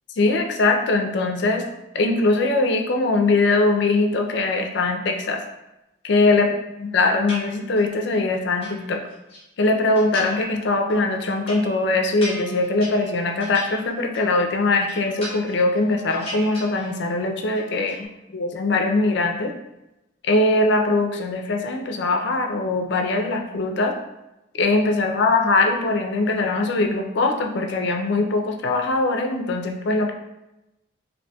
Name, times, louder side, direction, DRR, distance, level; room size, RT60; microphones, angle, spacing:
voice 1, 0.2-1.6 1.9-5.4 6.0-6.5 6.8-9.0 9.6-18.0 18.3-19.5 20.2-23.9 24.5-30.1, left 2 dB, 55° left, 4 dB, 0.4 m, -21 dB
sound 1, 7.3-8.0 8.3-9.4 9.9-10.6 10.9-14.4 14.7-15.8 16.1-17.2 17.4-18.1, equal, 30° left, 0.9 m, -37 dB
4.0 x 2.6 x 2.2 m, 0.94 s
head